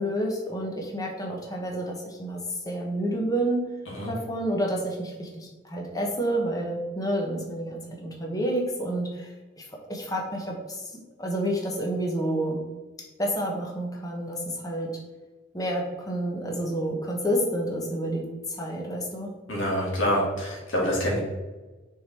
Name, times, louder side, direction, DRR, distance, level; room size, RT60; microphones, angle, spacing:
voice 1, 0.0-3.6 4.1-9.3 9.6-9.7 9.9-10.8 11.2-12.6 13.2-14.9 15.5-18.2 18.6-19.3, right 1 dB, 20° left, 0 dB, 1.1 m, -29 dB
voice 2, 19.5-21.2, equal, 80° left, -4 dB, 2.1 m, -26 dB
6.5 x 3.9 x 4.3 m, 1.2 s
head